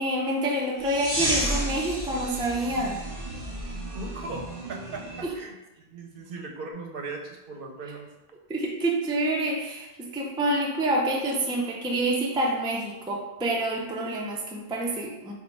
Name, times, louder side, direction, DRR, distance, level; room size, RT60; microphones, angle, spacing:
voice 1, 0.0-3.0 5.2-5.3 8.5-15.3, right 1 dB, 10° right, -2 dB, 0.3 m, -27 dB
sound 1, 0.8-5.3, right 1 dB, 40° left, 1.4 m, -32 dB
voice 2, 3.9-8.1, right 3 dB, 65° right, 2 dB, 0.8 m, -38 dB
4.0 x 2.2 x 4.5 m, 1.0 s
omnidirectional pair, 1.0 m